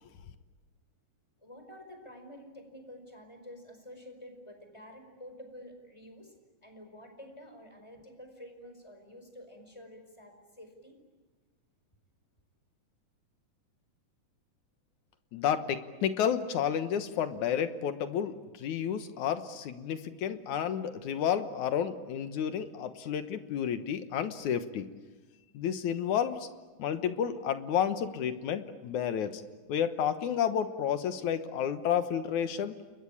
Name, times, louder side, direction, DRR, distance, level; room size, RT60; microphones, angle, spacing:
voice 1, 1.4-6.3 6.6-11.0, equal, 10° left, 5 dB, 4.9 m, -49 dB
voice 2, 15.3-24.9 25.5-26.5 26.8-29.4 29.7-32.7, left 8 dB, 70° left, 10 dB, 2.6 m, -31 dB
30.0 x 22.0 x 8.7 m, 1.3 s
omnidirectional pair, 3.7 m